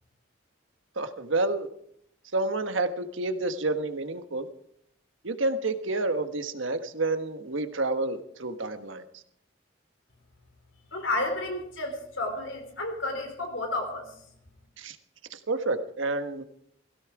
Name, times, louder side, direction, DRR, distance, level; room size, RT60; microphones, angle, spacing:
voice 1, 1.0-1.7 2.3-4.5 5.2-9.0 14.8-15.0 15.3-16.4, right 2 dB, 80° right, 8 dB, 1.3 m, -29 dB
voice 2, 10.9-14.2, left 2 dB, 80° left, 5 dB, 3.8 m, -31 dB
17.5 x 16.0 x 4.8 m, 0.67 s
head